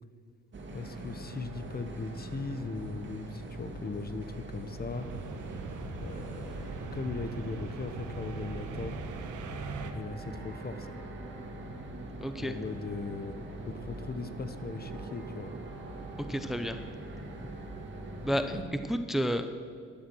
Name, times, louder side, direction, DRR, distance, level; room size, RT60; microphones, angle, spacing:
sound 1, 0.5-18.6, right 2 dB, 40° right, 2.3 m, -42 dB
voice 1, 0.7-5.1 6.0-9.0 9.9-11.0 12.3-13.4 13.7-15.5 18.5-18.6, left 3 dB, 30° left, 11 dB, 0.9 m, -39 dB
sound 2, 4.9-9.9, right 4 dB, 80° right, 1.5 m, -41 dB
voice 2, 12.2-12.5 16.3-16.8 18.2-19.5, equal, ahead, 8 dB, 0.7 m, -31 dB
12.0 x 12.0 x 6.2 m, 2.2 s
cardioid pair, 90°, 30 cm